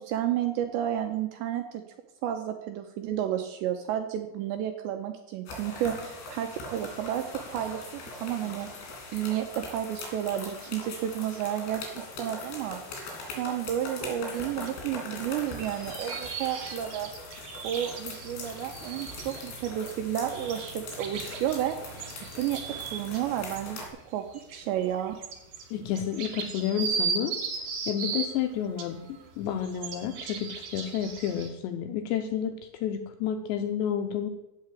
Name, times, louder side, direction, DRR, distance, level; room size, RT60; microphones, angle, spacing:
voice 1, 0.0-1.8 2.2-7.2 7.5-8.7 9.1-12.8 13.3-17.1 17.6-21.8 22.3-22.6 22.9-23.8 24.1-24.2 24.5-25.1, right 11 dB, 80° right, 6 dB, 2.6 m, -31 dB
sound 1, 5.5-23.9, left 2 dB, 60° left, 5.3 m, -41 dB
sound 2, 14.7-14.8 15.3-23.2 23.6-23.7 24.1-28.3 28.8-31.5, right 6 dB, 55° right, 2.8 m, -37 dB
voice 2, 25.7-27.3 27.9-34.3, left 9 dB, 80° left, 6 dB, 2.6 m, -30 dB
15.5 x 5.9 x 8.3 m, 0.94 s
omnidirectional pair, 5.8 m